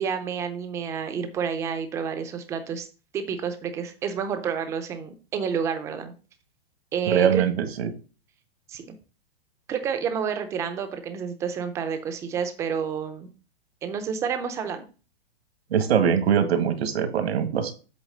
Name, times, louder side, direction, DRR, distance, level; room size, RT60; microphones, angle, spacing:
voice 1, 0.0-2.9 3.1-6.1 6.9-7.4 8.7-8.9 9.7-13.3 13.8-14.8, right 7 dB, 10° right, 8 dB, 0.4 m, -29 dB
voice 2, 7.1-7.5 7.8-7.9 15.7-17.7, right 8 dB, 85° right, 8 dB, 1.7 m, -22 dB
8.1 x 3.4 x 6.4 m, 0.35 s
supercardioid pair, 160°, 31 cm